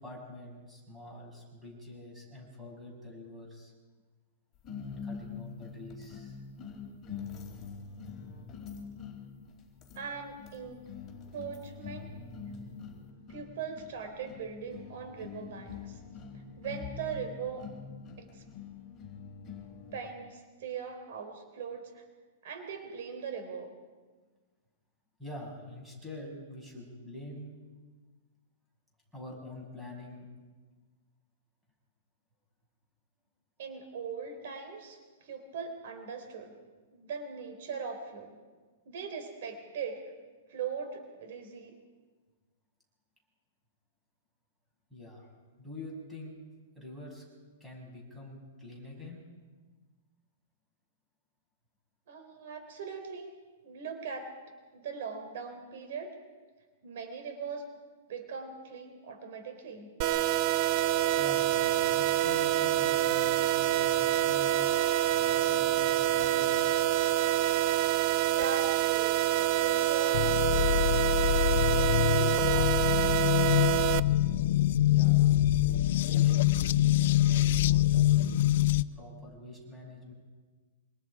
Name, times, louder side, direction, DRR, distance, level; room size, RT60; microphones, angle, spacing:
voice 1, 0.0-3.7 4.9-6.4 25.2-27.5 29.1-30.3 44.9-45.3 45.6-46.3 46.8-47.2 47.6-49.2 61.2-66.7 74.9-78.6 78.9-80.1, left 1 dB, 5° right, -1 dB, 7.1 m, -46 dB
sound 1, 4.6-20.1, left 5 dB, 20° left, 4.7 m, -44 dB
voice 2, 9.9-10.8 11.3-12.1 13.3-16.0 16.3-17.7 18.2-18.4 19.9-22.0 22.4-23.7 33.6-36.5 36.9-38.4 38.9-40.0 40.5-41.7 52.1-53.3 53.6-54.3 54.7-56.2 56.8-57.7 58.1-59.9 68.3-70.8 71.7-73.4, right 6 dB, 60° right, 6 dB, 3.9 m, -40 dB
sound 2, 60.0-74.0, right 13 dB, 40° right, 0.6 m, -26 dB
sound 3, 70.1-78.8, left 13 dB, 60° left, 0.7 m, -25 dB
26.5 x 26.0 x 5.0 m, 1.4 s
hypercardioid pair, 155°, 0 cm